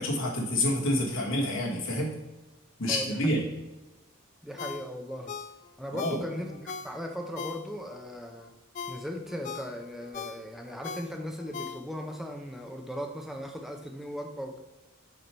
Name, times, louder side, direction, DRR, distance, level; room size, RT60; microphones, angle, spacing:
voice 1, 0.0-2.1 2.8-3.4 5.9-6.2, left 1 dB, 65° left, -2 dB, 1.6 m, -28 dB
voice 2, 2.9-3.4 4.4-5.4 5.8-8.5 8.9-14.6, equal, ahead, 3 dB, 0.6 m, -38 dB
Ringtone, 4.6-8.0 8.4-12.2 12.6-12.7, left 6 dB, 35° left, 0.3 m, -41 dB
6.7 x 4.7 x 4.4 m, 1.1 s
head